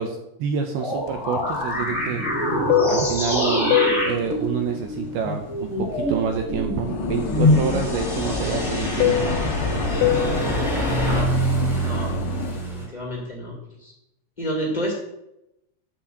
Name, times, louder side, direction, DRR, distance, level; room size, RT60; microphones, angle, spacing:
voice 1, 0.0-2.2 2.9-3.8 4.0-9.3, right 6 dB, 85° right, 5 dB, 2.2 m, -28 dB
sound 1, 0.8-11.2, left 1 dB, ahead, 0.8 m, -25 dB
Fixed-wing aircraft airplane, 1.1-6.5 6.8-12.6, left 10 dB, 85° left, 3.1 m, -27 dB
sound 2, 1.5-12.9, right 3 dB, 20° right, 1.1 m, -30 dB
voice 2, 11.0-11.4 11.7-12.2 12.5-13.5 13.8-13.9 14.4-14.9, equal, 70° left, -4 dB, 0.4 m, -30 dB
12.0 x 4.1 x 7.8 m, 0.86 s
omnidirectional pair, 5.5 m